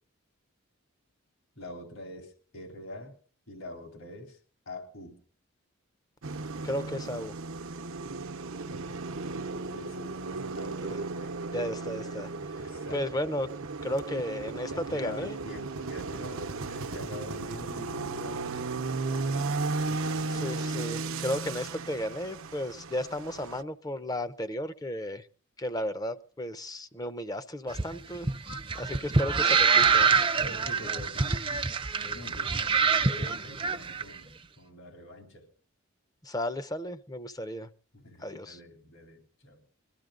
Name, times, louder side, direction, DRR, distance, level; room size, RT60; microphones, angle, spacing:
voice 1, 1.6-3.2 3.5-4.4 4.7-5.2 8.7-8.8 9.7-10.8 11.2-11.4 12.6-13.1 14.2-14.3 14.7-20.0 30.4-31.7 32.0-35.5 37.9-39.6, left 1 dB, 75° left, 4 dB, 3.7 m, -45 dB
sound 1, 6.2-23.6, right 3 dB, 75° right, 0.9 m, -35 dB
voice 2, 6.6-7.3 10.8-11.1 11.5-12.3 12.9-13.5 13.8-15.4 20.3-25.3 25.6-28.3 28.7-30.1 36.2-37.7 38.2-38.6, left 1 dB, 15° left, 12 dB, 0.6 m, -34 dB
sound 2, 27.7-34.0, right 5 dB, 25° right, 0.6 m, -25 dB
22.0 x 13.5 x 3.8 m, 0.40 s
head